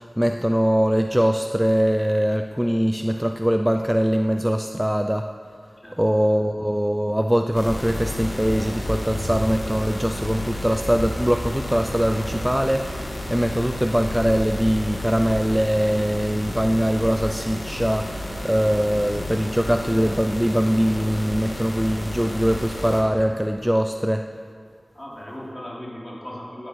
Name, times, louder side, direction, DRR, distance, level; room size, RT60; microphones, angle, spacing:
voice 1, 0.0-5.3 6.0-24.3, equal, 10° right, 6 dB, 0.5 m, -22 dB
sound 1, 7.5-23.0, left 1 dB, 65° left, 2.1 m, -31 dB
voice 2, 24.9-26.7, equal, 25° left, -5 dB, 3.6 m, -37 dB
14.0 x 9.6 x 4.8 m, 2.3 s
wide cardioid pair, 45°, 0 cm